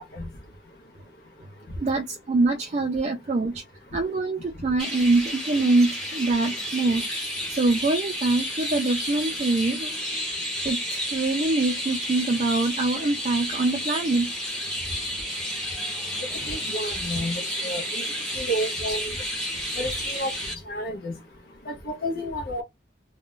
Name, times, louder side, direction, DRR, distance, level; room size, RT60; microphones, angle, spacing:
voice 1, 1.8-3.6 3.9-7.2 7.5-9.9 10.6-14.3, right 2 dB, 35° right, 0.4 m, -24 dB
Chirp tweet, 4.8-20.5, equal, ahead, 0.9 m, -31 dB
voice 2, 16.5-18.0 18.4-19.1 19.8-20.3 20.7-21.2 21.7-22.6, equal, 50° left, 0.7 m, -30 dB
2.4 x 2.1 x 3.6 m
head